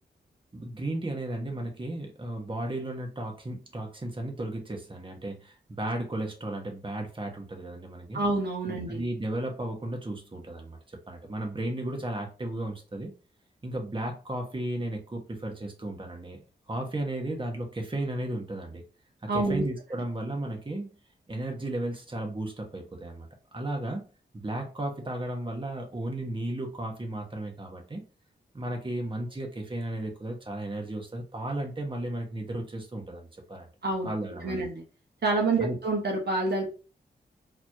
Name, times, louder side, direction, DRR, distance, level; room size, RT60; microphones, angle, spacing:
voice 1, 0.5-8.2 8.7-10.8 11.1-13.1 13.6-16.4 16.7-18.8 19.2-20.9 21.3-23.3 23.5-24.0 24.3-28.0 28.5-33.7 34.0-34.6 35.6-35.8, right 1 dB, 25° right, 2 dB, 1.3 m, -34 dB
voice 2, 8.1-9.0 19.3-19.7 33.8-34.1 34.4-34.8 35.2-36.7, right 3 dB, 60° right, 0 dB, 1.2 m, -27 dB
4.1 x 3.1 x 2.8 m, 0.34 s
cardioid pair, 55°, 19 cm